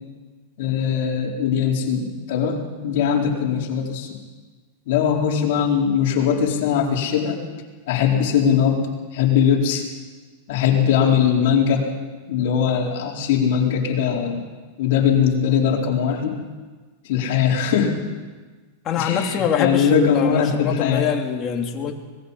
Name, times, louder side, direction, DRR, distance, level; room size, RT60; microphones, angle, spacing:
voice 1, 0.6-4.2 4.9-7.4 7.9-8.8 9.1-9.8 10.5-11.8 12.3-14.4 14.8-16.4 17.0-18.0 19.0-21.1, left 7 dB, 65° left, -1 dB, 4.5 m, -20 dB
voice 2, 18.8-21.9, left 8 dB, 35° left, 2 dB, 2.8 m, -24 dB
25.0 x 20.0 x 5.6 m, 1.4 s
supercardioid pair, 135°, 0 cm